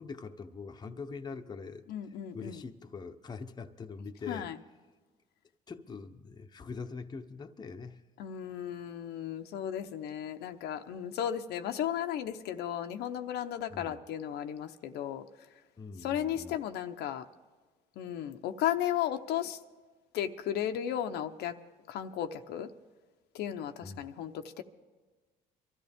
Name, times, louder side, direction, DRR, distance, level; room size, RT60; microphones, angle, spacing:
voice 1, 0.0-1.8 2.3-4.5 5.7-8.0 13.7-14.0 15.8-16.6 23.8-24.1, left 4 dB, 25° left, 6 dB, 0.9 m, -43 dB
voice 2, 1.9-2.6 4.3-4.6 8.2-15.2 16.0-17.3 18.0-19.6 20.1-21.6 21.9-22.7 23.3-24.6, left 10 dB, 80° left, 6 dB, 0.8 m, -35 dB
23.5 x 13.5 x 3.6 m, 1.3 s
cardioid pair, 110°, 17 cm